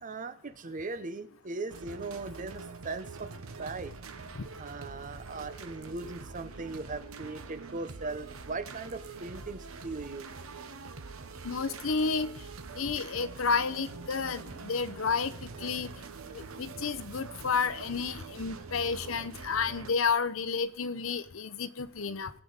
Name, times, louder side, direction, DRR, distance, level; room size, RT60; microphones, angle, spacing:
voice 1, 0.0-3.3 3.6-3.9 4.6-10.3, right 3 dB, 40° right, 12 dB, 0.7 m, -39 dB
sound 1, 1.7-19.9, right 4 dB, 85° right, 1.0 m, -45 dB
voice 2, 11.4-12.3 12.8-15.9 16.3-22.3, left 5 dB, 70° left, 13 dB, 0.8 m, -31 dB
21.0 x 8.0 x 4.0 m, 0.66 s
head